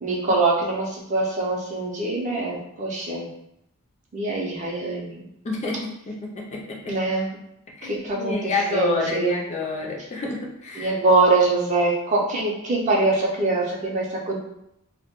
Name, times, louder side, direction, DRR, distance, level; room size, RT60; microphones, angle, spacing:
voice 1, 0.0-3.3 4.1-5.2 6.9-7.3 7.8-9.4 10.7-14.4, right 3 dB, 35° right, -2 dB, 0.5 m, -23 dB
voice 2, 5.4-6.9 7.8-10.9, left 3 dB, 30° left, -1 dB, 0.3 m, -28 dB
2.1 x 2.1 x 2.9 m, 0.80 s
head